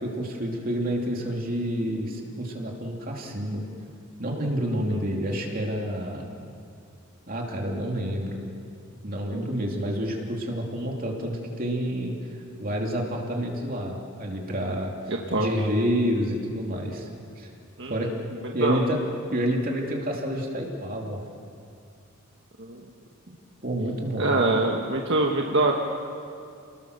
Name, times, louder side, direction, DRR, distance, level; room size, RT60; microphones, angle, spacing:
voice 1, 0.0-3.6 4.2-6.3 7.3-8.4 9.0-12.2 12.6-14.9 15.3-17.1 17.4-17.5 17.9-19.0 19.3-21.2 23.6-24.4, equal, 40° right, 0 dB, 2.9 m, -28 dB
voice 2, 15.1-15.5 17.8-17.9 18.6-18.8 22.6-22.8 24.2-25.7, right 2 dB, 55° right, 0 dB, 1.5 m, -24 dB
29.5 x 20.5 x 6.6 m, 2.4 s
head